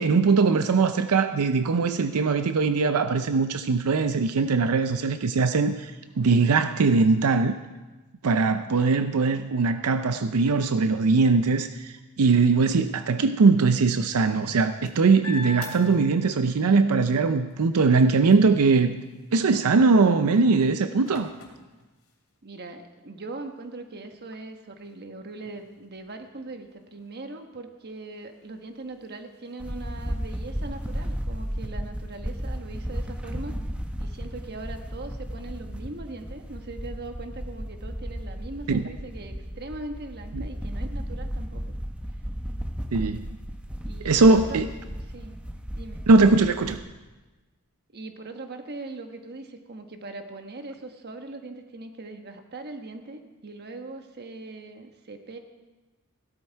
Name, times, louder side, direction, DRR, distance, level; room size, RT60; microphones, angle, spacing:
voice 1, 0.0-5.9 6.2-7.6 8.2-18.9 19.3-21.3 38.7-38.8 40.3-40.5 42.9-43.3 44.0-44.7 46.1-46.8, right 4 dB, 90° right, 10 dB, 0.5 m, -21 dB
sound 1, 14.3-16.7 17.1-22.5 23.2-23.3 23.6-31.6, left 2 dB, 70° left, 2.8 m, -47 dB
voice 2, 22.4-33.6 34.0-41.6 43.8-44.6 44.9-45.4 45.7-46.1 47.9-55.4, right 2 dB, 50° right, 6 dB, 1.3 m, -40 dB
sound 2, 29.6-46.8, equal, 5° right, 0.9 m, -34 dB
16.5 x 12.0 x 4.6 m, 1.2 s
head